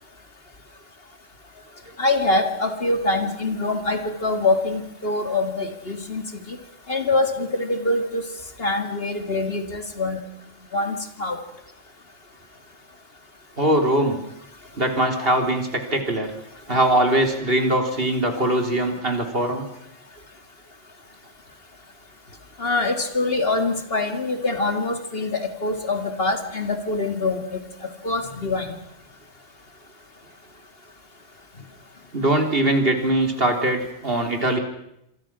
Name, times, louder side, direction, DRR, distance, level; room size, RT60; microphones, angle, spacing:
voice 1, 2.0-6.6 6.9-8.2 8.6-10.2 10.7-11.4 22.6-27.6 28.0-28.8, left 2 dB, 55° left, 7 dB, 2.6 m, -24 dB
voice 2, 13.6-14.2 14.8-16.3 16.7-19.7 32.1-34.6, right 1 dB, 55° right, 5 dB, 3.7 m, -21 dB
26.5 x 24.0 x 6.2 m, 0.79 s
omnidirectional pair, 1.2 m